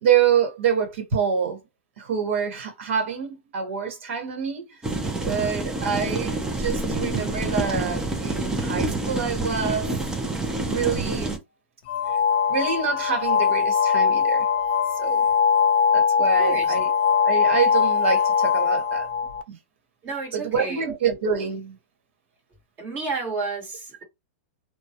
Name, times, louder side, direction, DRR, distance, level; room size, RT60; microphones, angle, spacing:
voice 1, 0.0-1.6 2.0-4.8 5.2-10.0 10.6-11.4 12.5-14.5 15.0-15.2 15.9-16.9 17.2-19.1 19.5-19.6 20.3-21.8, right 7 dB, 70° right, 1.0 m, -26 dB
sound 1, 4.8-11.4, right 2 dB, 10° right, 0.5 m, -27 dB
sound 2, 11.9-19.4, left 6 dB, 50° left, 0.4 m, -21 dB
voice 2, 16.4-16.7 20.0-20.8 22.8-24.0, right 4 dB, 25° right, 1.1 m, -31 dB
2.2 x 2.0 x 2.8 m
hypercardioid pair, 145°, 7 cm